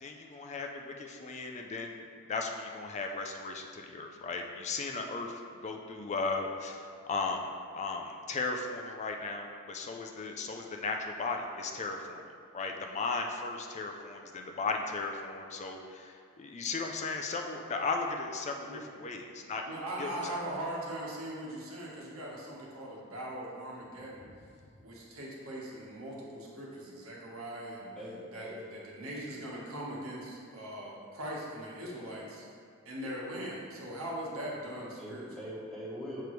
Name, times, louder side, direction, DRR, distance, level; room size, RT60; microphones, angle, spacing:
voice 1, 0.0-2.0 2.3-12.2 12.5-19.6 20.0-20.4, left 3 dB, 35° left, 3 dB, 0.4 m, -36 dB
voice 2, 19.7-24.3 24.8-27.9 28.3-32.4 32.8-35.3, right 1 dB, 80° right, -4 dB, 1.3 m, -40 dB
voice 3, 28.0-28.6 35.0-36.3, equal, 5° left, -7 dB, 1.1 m, -42 dB
6.8 x 4.5 x 3.1 m, 2.3 s
head